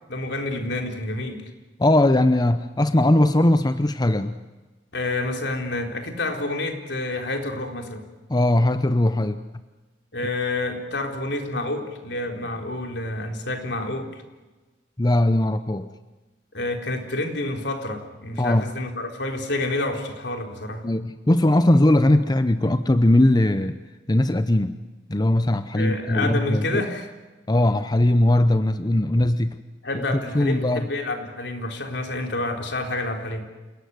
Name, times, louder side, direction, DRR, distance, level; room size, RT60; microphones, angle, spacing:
voice 1, 0.1-1.5 4.9-8.0 10.1-14.2 16.5-20.8 25.7-27.1 29.8-33.5, left 2 dB, 70° left, 3 dB, 3.9 m, -28 dB
voice 2, 1.8-4.3 8.3-9.4 15.0-15.9 18.4-18.6 20.8-23.7 24.1-24.8 25.1-26.6 27.5-29.6 29.9-30.9, left 1 dB, 25° left, 10 dB, 0.7 m, -19 dB
28.5 x 18.0 x 9.6 m, 1.2 s
head